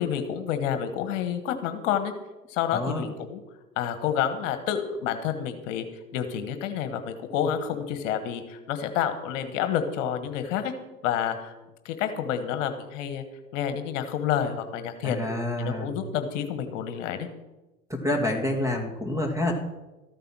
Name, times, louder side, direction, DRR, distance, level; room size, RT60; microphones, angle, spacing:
voice 1, 0.0-2.1 2.5-3.4 3.8-5.8 6.1-10.7 11.0-11.5 11.8-13.2 13.5-15.2 15.6-17.3, left 9 dB, 55° left, 9 dB, 1.5 m, -29 dB
voice 2, 2.7-3.0 15.0-15.9 17.9-19.5, left 1 dB, 5° right, 4 dB, 2.2 m, -28 dB
13.5 x 9.2 x 6.1 m, 1.1 s
hypercardioid pair, 95°, 44 cm